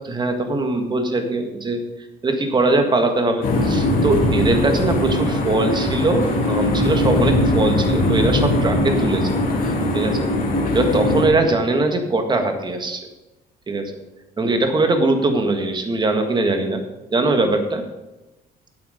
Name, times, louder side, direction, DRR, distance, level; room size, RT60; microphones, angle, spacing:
voice 1, 0.0-1.8 2.2-9.3 9.6-10.3 10.7-13.1 13.7-14.0 14.4-16.8 17.1-17.8, right 2 dB, 25° right, 6 dB, 1.8 m, -21 dB
sound 1, 3.4-11.3, left 1 dB, 55° left, 3.0 m, -20 dB
10.5 x 8.6 x 5.1 m, 1.0 s
cardioid pair, 110°, 17 cm